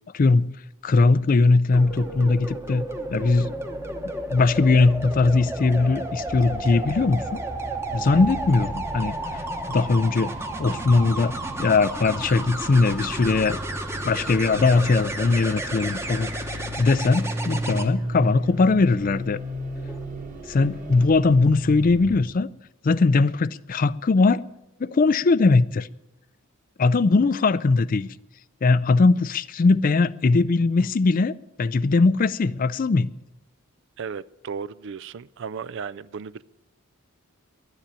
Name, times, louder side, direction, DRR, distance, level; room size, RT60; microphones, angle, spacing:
voice 1, 0.1-0.6 0.8-2.9 3.1-3.5 4.3-7.4 7.9-9.2 9.7-10.3 10.6-13.6 14.0-16.3 16.8-19.4 20.5-22.5 22.8-24.4 24.8-25.9 26.8-28.1 28.6-33.1, left 3 dB, 40° left, 0.4 m, -20 dB
sound 1, 1.7-17.8 19.8-20.0, right 1 dB, 10° right, 1.0 m, -32 dB
sound 2, 6.2-22.2, equal, 35° right, 1.8 m, -36 dB
voice 2, 34.0-36.4, right 6 dB, 55° right, 0.4 m, -35 dB
11.5 x 10.0 x 8.9 m
head